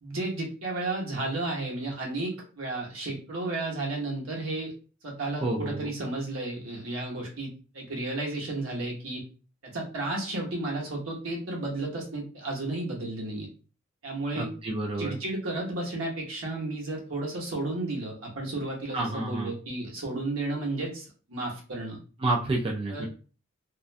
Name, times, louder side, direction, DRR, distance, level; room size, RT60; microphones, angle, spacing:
voice 1, 0.0-4.7 5.0-9.2 9.6-13.5 14.0-14.5 15.0-22.0 22.9-23.1, right 2 dB, 75° right, -2 dB, 0.9 m, -33 dB
voice 2, 5.4-5.9 14.4-15.1 18.9-19.5 22.2-23.1, right 2 dB, 25° right, -1 dB, 0.3 m, -29 dB
2.3 x 2.1 x 2.5 m, 0.37 s
head